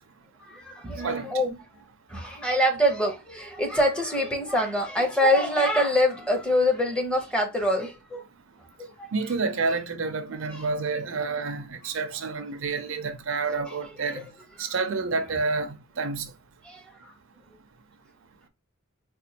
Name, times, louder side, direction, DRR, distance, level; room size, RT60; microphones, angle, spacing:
voice 1, 0.5-1.5 2.1-8.2 9.0-9.1 16.7-16.8, equal, 5° left, 0.7 m, -24 dB
voice 2, 9.1-14.3 14.6-16.3, right 4 dB, 65° right, 0.5 m, -29 dB
4.2 x 2.3 x 2.7 m
head